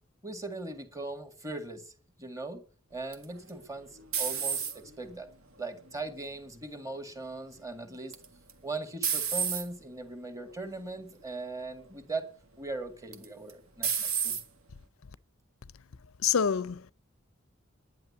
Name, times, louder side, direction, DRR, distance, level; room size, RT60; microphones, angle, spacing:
voice 1, 0.2-1.9 2.2-2.6 2.9-5.3 5.6-8.1 8.6-12.3 12.6-14.4, right 2 dB, 15° right, 1.9 m, -39 dB
sound 1, 3.1-5.0 5.6-6.1 8.1-8.5 9.0-9.6 10.4-10.7 11.1-11.2 13.1-13.5 13.8-14.4, right 7 dB, 75° right, 1.8 m, -30 dB
voice 2, 16.2-16.9, left 7 dB, 80° left, 0.6 m, -26 dB
10.5 x 10.5 x 9.7 m
head